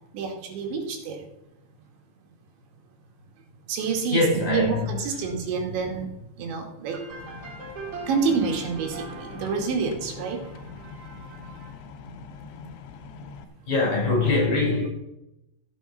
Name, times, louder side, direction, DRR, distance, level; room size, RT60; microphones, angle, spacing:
voice 1, 0.1-1.2 3.7-4.2 4.5-6.1 6.4-7.0 8.1-10.4, right 5 dB, 70° right, 1 dB, 4.3 m, -27 dB
voice 2, 3.8-5.3 13.7-14.9, left 2 dB, 40° left, -3 dB, 6.5 m, -24 dB
sound 1, 6.9-11.5, right 3 dB, 45° right, 2.3 m, -41 dB
sound 2, 7.1-13.4, left 5 dB, 80° left, 3.2 m, -43 dB
14.5 x 8.0 x 5.8 m, 0.86 s
omnidirectional pair, 5.6 m